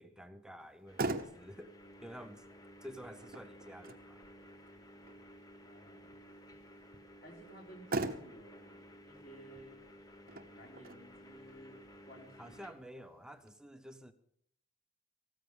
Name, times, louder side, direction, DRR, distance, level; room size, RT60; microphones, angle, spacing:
voice 1, 0.0-2.4 2.8-4.2 12.4-14.1, equal, 5° right, 0.8 m, -50 dB
Motor vehicle (road), 0.6-13.5, right 2 dB, 45° right, 0.9 m, -44 dB
sound 1, 0.9-12.7, equal, 15° left, 1.0 m, -56 dB
voice 2, 5.6-6.2 7.2-9.8 10.3-12.5 12.9-13.1, right 1 dB, 45° left, 3.8 m, -56 dB
15.0 x 13.0 x 5.4 m
head